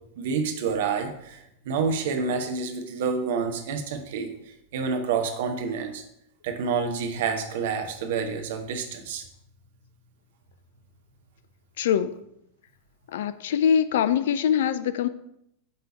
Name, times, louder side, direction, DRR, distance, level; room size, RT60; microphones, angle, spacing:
voice 1, 0.2-6.0 6.4-9.2, right 5 dB, 55° right, 4 dB, 1.1 m, -28 dB
voice 2, 11.8-12.1 13.1-15.1, left 8 dB, 55° left, 13 dB, 0.3 m, -23 dB
8.4 x 3.4 x 4.3 m, 0.77 s
figure-of-eight pair, 90°, 0 cm